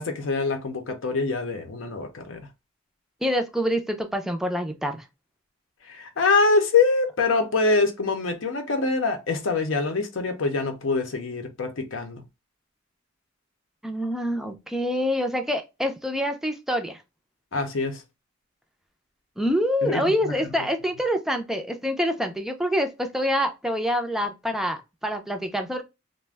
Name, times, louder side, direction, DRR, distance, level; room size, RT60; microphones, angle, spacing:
voice 1, 0.0-2.5 5.9-12.2 17.5-18.0 19.8-20.3, left 3 dB, 80° left, 0.6 m, -24 dB
voice 2, 3.2-5.0 13.8-17.0 19.4-25.8, equal, ahead, 0.4 m, -26 dB
2.4 x 2.1 x 3.3 m
head